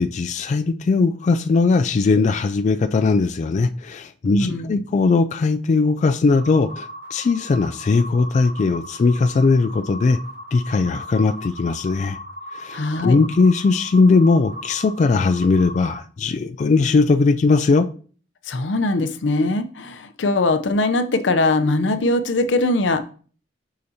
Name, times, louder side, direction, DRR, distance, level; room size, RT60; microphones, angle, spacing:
voice 1, 0.0-10.2 10.5-12.2 12.5-17.9, left 4 dB, 40° left, 0.3 m, -19 dB
voice 2, 4.2-4.8 12.7-13.2 18.5-23.1, left 2 dB, 85° left, 0.6 m, -21 dB
sound 1, 6.3-16.0, equal, 20° right, 2.9 m, -38 dB
6.8 x 5.0 x 2.7 m
head